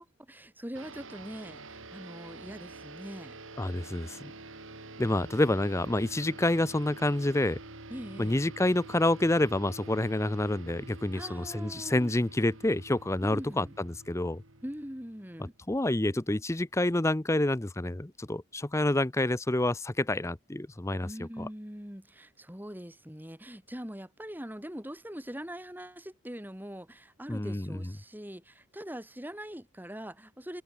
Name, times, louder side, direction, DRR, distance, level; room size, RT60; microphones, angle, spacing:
voice 1, 0.0-3.4 7.9-8.4 11.1-12.1 13.2-13.8 14.6-15.5 21.0-30.6, equal, 10° right, 2.2 m, -42 dB
sound 1, 0.7-15.6, right 2 dB, 65° right, 3.4 m, -47 dB
voice 2, 3.6-4.3 5.0-7.6 8.2-14.4 15.7-21.5 27.3-27.8, left 1 dB, 15° left, 0.6 m, -28 dB
head